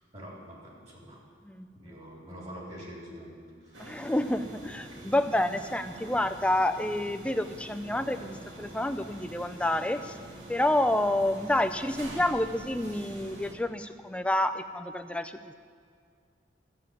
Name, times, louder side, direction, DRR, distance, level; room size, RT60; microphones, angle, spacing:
voice 1, 0.1-1.2 1.7-3.9, equal, 35° right, -4 dB, 3.4 m, -45 dB
voice 2, 1.4-1.9 3.8-10.2 10.5-15.6, left 1 dB, 5° left, 10 dB, 0.4 m, -29 dB
sound 1, 3.7-13.5, right 1 dB, 85° right, 2.0 m, -45 dB
13.0 x 7.3 x 9.0 m, 2.1 s
head